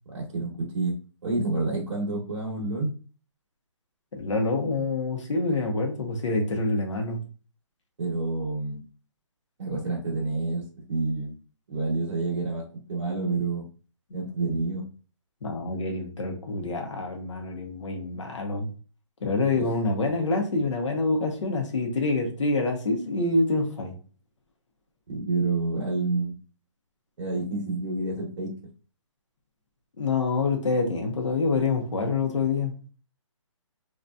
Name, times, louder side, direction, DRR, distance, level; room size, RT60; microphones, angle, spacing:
voice 1, 0.1-0.9 1.2-2.9 8.0-8.8 9.6-11.3 11.7-13.6 14.1-14.8 19.5-19.6 25.1-26.4 27.2-28.5, right 3 dB, 60° right, -3 dB, 0.9 m, -28 dB
voice 2, 4.1-7.2 15.4-18.7 19.2-23.9 30.0-32.8, left 3 dB, 65° left, 2 dB, 0.8 m, -26 dB
2.7 x 2.3 x 2.2 m, 0.37 s
hypercardioid pair, 170°, 17 cm